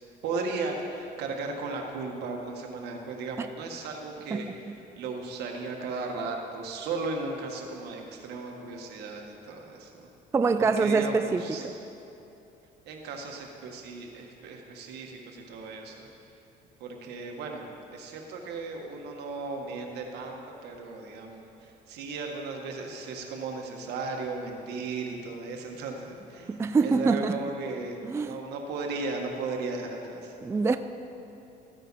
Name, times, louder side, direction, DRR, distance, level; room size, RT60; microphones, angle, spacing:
voice 1, 0.2-4.5 5.0-10.1 10.6-11.6 12.9-16.1 16.8-26.6 26.8-28.0 28.3-30.3, right 3 dB, 75° right, 2 dB, 1.6 m, -36 dB
voice 2, 10.3-11.7 26.5-27.4 28.1-28.4 30.4-30.8, right 4 dB, 15° right, 10 dB, 0.3 m, -25 dB
14.5 x 9.2 x 4.2 m, 2.9 s
cardioid pair, 110°, 17 cm